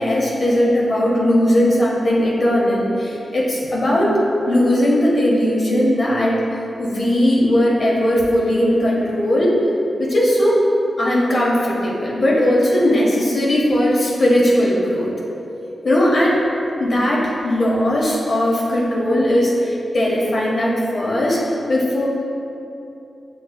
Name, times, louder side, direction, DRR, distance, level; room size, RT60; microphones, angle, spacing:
voice 1, 0.0-4.2 4.5-6.4 6.8-9.5 10.0-10.6 11.0-15.1 15.8-16.4 16.8-21.4 21.7-22.1, left 1 dB, 55° left, -5 dB, 0.8 m, -18 dB
6.3 x 3.0 x 2.2 m, 2.8 s
cardioid pair, 75°, 0 cm